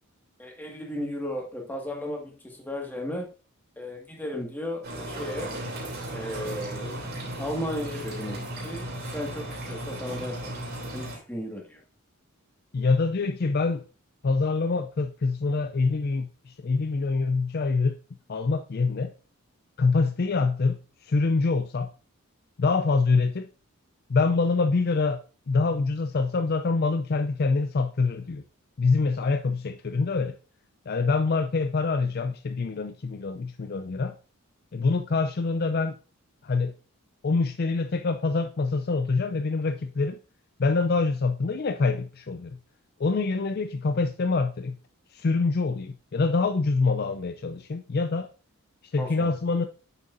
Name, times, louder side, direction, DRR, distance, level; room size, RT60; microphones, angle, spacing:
voice 1, 0.4-3.3 3.8-5.5 6.1-10.6 10.9-11.8 49.0-49.3, left 1 dB, 10° left, 1.8 m, -35 dB
sound 1, 4.8-11.2, right 1 dB, 45° right, 2.8 m, -35 dB
voice 2, 12.7-13.8 14.2-18.0 18.3-19.1 19.8-21.9 22.6-23.5 24.1-28.4 28.8-30.4 30.9-34.1 34.7-36.0 36.4-36.7 37.2-40.2 40.6-42.6 43.0-44.8 45.1-48.3 48.8-49.6, left 4 dB, 45° left, 0.4 m, -25 dB
8.6 x 6.8 x 2.6 m
head